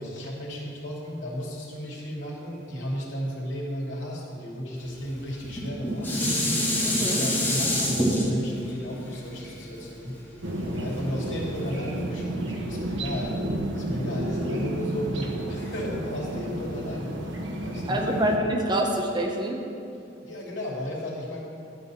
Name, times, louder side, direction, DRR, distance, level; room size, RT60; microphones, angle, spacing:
voice 1, 0.0-6.1 6.9-10.2 10.6-13.3 13.7-17.2 17.6-18.0 20.2-21.4, equal, 75° left, -4 dB, 2.7 m, -34 dB
Dishes pots and pans, 5.4-10.7 11.3-11.4, left 1 dB, 10° left, 2.2 m, -26 dB
voice 2, 6.8-7.2 17.9-19.6, right 1 dB, 25° right, 1 dB, 1.0 m, -26 dB
sound 1, 10.4-18.4, right 1 dB, 75° right, 1.0 m, -31 dB
11.5 x 5.6 x 7.5 m, 2.6 s
head